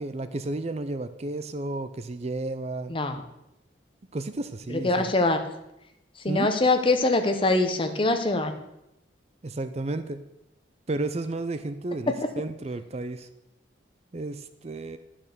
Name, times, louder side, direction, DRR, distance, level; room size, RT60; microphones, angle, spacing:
voice 1, 0.0-2.9 4.1-5.1 6.3-6.5 9.4-10.2 10.9-13.3 14.1-15.0, right 2 dB, 35° right, 11 dB, 0.5 m, -32 dB
voice 2, 2.9-3.2 4.7-5.4 6.2-8.5, left 2 dB, 30° left, 7 dB, 0.9 m, -23 dB
11.0 x 6.2 x 6.7 m, 0.87 s
head